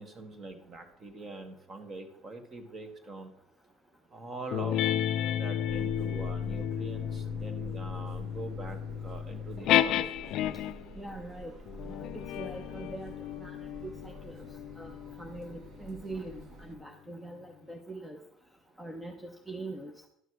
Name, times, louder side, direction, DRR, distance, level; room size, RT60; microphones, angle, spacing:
voice 1, 0.0-3.3 4.1-4.8 5.3-10.2, right 2 dB, 25° right, 7 dB, 1.6 m, -43 dB
sound 1, 4.5-10.9 11.7-16.6, left 11 dB, 50° left, 0.5 m, -32 dB
sound 2, 5.7-16.8, right 1 dB, 45° right, 1.5 m, -48 dB
voice 2, 11.0-11.5 11.8-12.1 12.4-13.1 13.4-13.6 13.8-14.4 14.8-18.2 18.8-19.9, right 2 dB, 5° right, 3 dB, 0.8 m, -42 dB
11.5 x 6.7 x 6.3 m, 0.73 s
cardioid pair, 160°, 0 cm